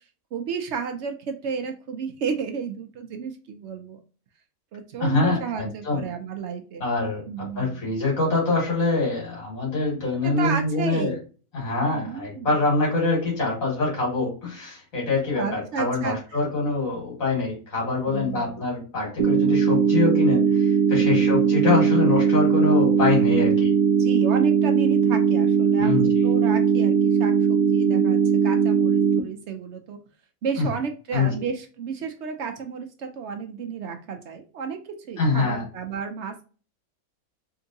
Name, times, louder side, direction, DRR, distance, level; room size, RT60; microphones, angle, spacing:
voice 1, 0.3-4.0 4.7-6.9 7.3-8.0 10.2-11.1 11.9-12.5 15.3-16.2 18.1-18.6 21.0-21.3 24.0-30.0 30.4-36.4, right 6 dB, 65° right, 5 dB, 0.7 m, -32 dB
voice 2, 5.0-6.0 6.8-7.3 7.5-11.2 11.5-23.7 25.8-26.3 30.6-30.7 31.1-31.4 35.2-35.6, left 3 dB, 65° left, -3 dB, 2.2 m, -24 dB
sound 1, 19.2-29.2, right 7 dB, 85° right, 1.1 m, -20 dB
3.7 x 2.6 x 2.6 m, 0.36 s
omnidirectional pair, 1.5 m